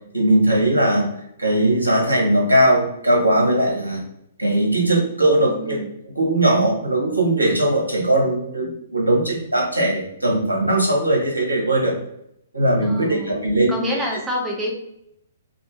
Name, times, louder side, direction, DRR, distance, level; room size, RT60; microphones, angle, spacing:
voice 1, 0.1-1.1 1.4-4.0 4.4-5.8 6.0-12.0 12.5-13.9, right 1 dB, 85° right, -2 dB, 0.9 m, -19 dB
voice 2, 5.4-5.9 12.8-13.3 13.7-14.7, equal, 5° right, -3 dB, 0.6 m, -27 dB
2.6 x 2.6 x 2.2 m, 0.76 s
figure-of-eight pair, 120°, 0 cm